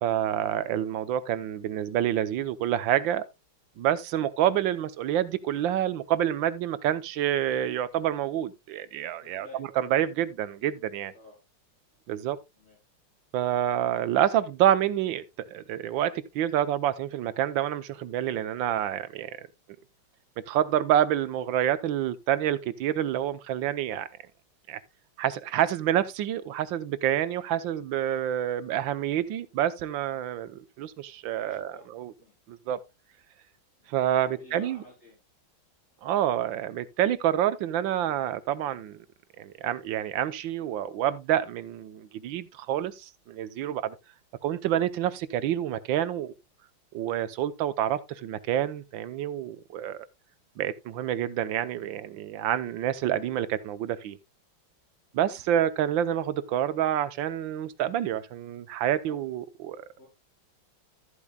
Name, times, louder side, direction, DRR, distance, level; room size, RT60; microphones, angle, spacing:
voice 1, 0.0-3.2 3.8-9.5 9.8-11.1 12.1-12.4 13.3-19.5 20.4-24.1 24.7-24.8 25.2-32.1 32.5-32.8 33.9-34.8 36.0-39.0 39.4-44.0 44.4-46.3 46.9-50.0 50.6-54.2 55.1-59.8, right 11 dB, 85° right, 1.5 m, -28 dB
voice 2, 9.2-9.7 11.1-11.4 12.6-12.8 31.4-31.9 32.2-32.3 33.8-33.9 34.3-35.1 55.3-55.5 59.1-59.3 60.0-60.1, left 2 dB, 35° left, 3.8 m, -51 dB
13.5 x 8.5 x 2.2 m
omnidirectional pair, 2.1 m